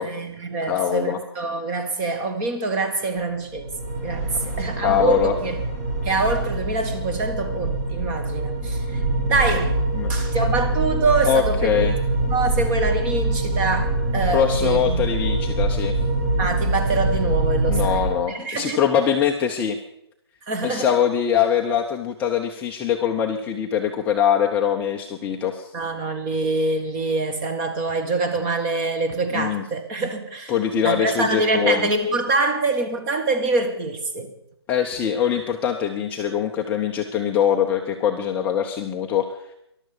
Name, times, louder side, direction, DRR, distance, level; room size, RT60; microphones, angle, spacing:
voice 1, 0.0-3.7 4.0-4.3 4.6-5.6 6.0-8.8 9.3-9.8 10.1-11.8 12.3-15.1 16.4-18.8 20.5-21.0 25.7-30.5 30.8-34.3, right 3 dB, 20° right, 7 dB, 1.7 m, -25 dB
voice 2, 0.6-1.2 4.8-5.3 9.9-10.1 11.2-11.9 14.3-15.9 17.7-19.8 20.6-25.7 29.3-29.6 30.5-31.9 34.7-39.3, left 8 dB, 10° left, 2 dB, 0.7 m, -22 dB
sound 1, 3.5-18.1, right 2 dB, 40° right, 6.2 m, -24 dB
14.0 x 11.5 x 6.9 m, 0.77 s
figure-of-eight pair, 145°, 14 cm